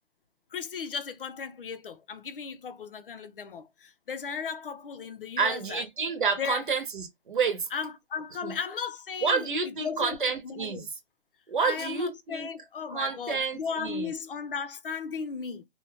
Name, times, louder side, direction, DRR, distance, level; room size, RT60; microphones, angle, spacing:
voice 1, 0.5-5.8 6.4-6.6 7.7-10.9 11.6-15.6, left 6 dB, 60° left, 0.7 m, -36 dB
voice 2, 5.4-7.7 8.4-8.5 9.2-10.9 11.5-12.5 12.9-14.1, right 5 dB, 55° right, 0.9 m, -29 dB
2.6 x 2.3 x 3.4 m
hypercardioid pair, 165°, 31 cm